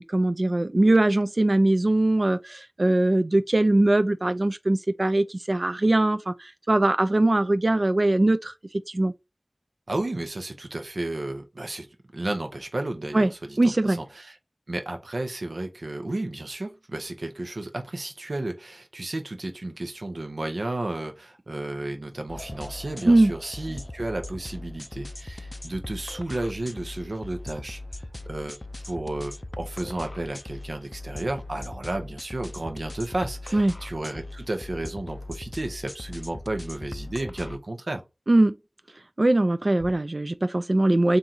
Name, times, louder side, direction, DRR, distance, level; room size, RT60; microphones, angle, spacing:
voice 1, 0.0-8.5 8.9-9.1 13.1-13.3 13.6-14.0 23.0-23.3 33.5-33.8 38.3-38.6 39.2-41.2, right 2 dB, 60° right, 0.4 m, -21 dB
voice 2, 9.9-11.9 12.1-14.4 14.7-27.8 28.3-28.6 28.8-38.0, right 2 dB, 85° right, 0.8 m, -33 dB
sound 1, 22.3-37.6, left 2 dB, 40° left, 0.4 m, -39 dB
3.7 x 2.6 x 4.2 m
wide cardioid pair, 50°, 0 cm